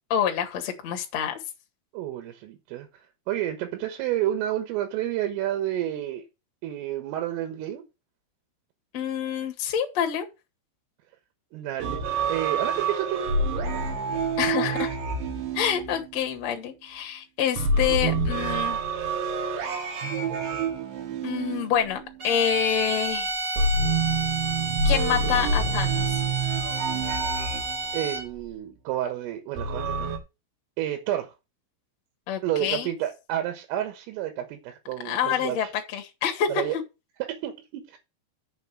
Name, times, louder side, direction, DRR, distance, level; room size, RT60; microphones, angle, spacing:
voice 1, 0.1-1.4 8.9-10.3 14.4-15.0 15.5-18.8 21.2-23.3 24.8-26.2 32.3-32.9 35.0-36.8, left 9 dB, 50° left, 2.1 m, -27 dB
voice 2, 1.9-6.2 6.6-7.8 11.5-12.0 12.3-13.2 27.9-30.1 30.8-31.3 32.4-35.6 36.5-36.8 37.2-38.0, right 12 dB, 85° right, 3.9 m, -30 dB
sound 1, 11.8-16.4 17.6-22.3 23.6-28.2 29.6-30.2, right 3 dB, 70° right, 4.0 m, -27 dB
sound 2, 22.2-28.4, right 2 dB, 30° right, 1.6 m, -31 dB
7.1 x 6.0 x 7.6 m
omnidirectional pair, 5.8 m